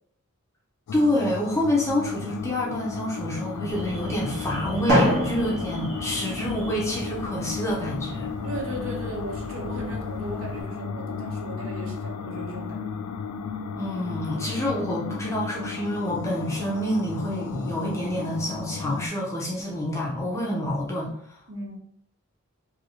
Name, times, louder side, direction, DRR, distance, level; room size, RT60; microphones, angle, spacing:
sound 1, 0.9-19.1, left 6 dB, 85° left, 0.3 m, -34 dB
voice 1, 0.9-8.3 13.8-21.4, equal, 15° left, -3 dB, 0.5 m, -27 dB
Alarm, 3.7-10.6, left 1 dB, 90° right, 1.4 m, -39 dB
Drum, 4.9-6.9, equal, 45° right, 0.9 m, -25 dB
voice 2, 8.4-13.0 21.5-21.8, right 1 dB, 65° right, 1 dB, 0.7 m, -36 dB
2.7 x 2.7 x 2.8 m, 0.64 s
head